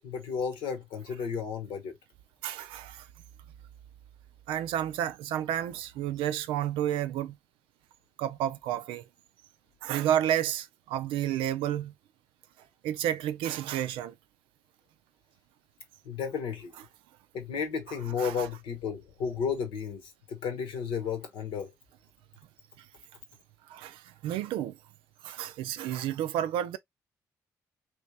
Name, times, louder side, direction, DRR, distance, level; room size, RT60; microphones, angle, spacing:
voice 1, 0.0-1.9 16.0-16.7 17.3-21.7, left 6 dB, 75° left, 1.1 m, -33 dB
voice 2, 2.4-3.1 4.5-7.4 8.2-9.1 9.8-11.9 12.8-14.1 18.2-18.5 22.8-22.9 23.7-24.8 25.2-26.8, right 11 dB, 75° right, 0.4 m, -31 dB
3.0 x 3.0 x 3.2 m
hypercardioid pair, 45°, 9 cm